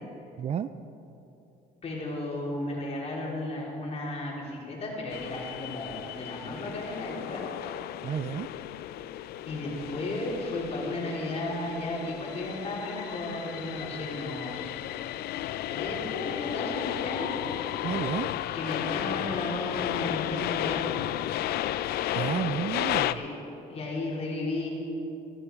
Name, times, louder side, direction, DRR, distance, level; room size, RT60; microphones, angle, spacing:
voice 1, 0.4-0.7 8.0-8.5 17.8-18.3 22.1-23.2, right 8 dB, 40° right, 13 dB, 0.4 m, -31 dB
voice 2, 1.8-7.4 7.8-7.9 9.5-14.8 15.7-17.4 18.5-21.0 23.1-23.4 23.7-24.7, left 2 dB, 35° left, -3 dB, 3.7 m, -34 dB
sound 1, 5.1-23.1, left 13 dB, 70° left, 0.4 m, -33 dB
14.0 x 14.0 x 4.7 m, 2.9 s
cardioid pair, 110°, 17 cm